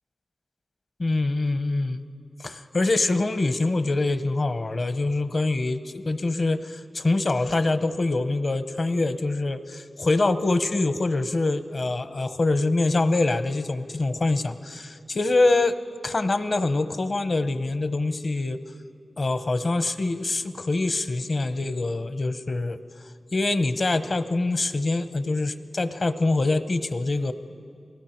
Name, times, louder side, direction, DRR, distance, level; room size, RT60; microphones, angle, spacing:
voice 1, 1.0-2.1 2.4-15.8 16.0-18.6 19.2-22.8 23.3-27.3, left 2 dB, 55° left, 11 dB, 0.9 m, -24 dB
29.5 x 19.5 x 4.5 m, 2.4 s
cardioid pair, 45°, 0 cm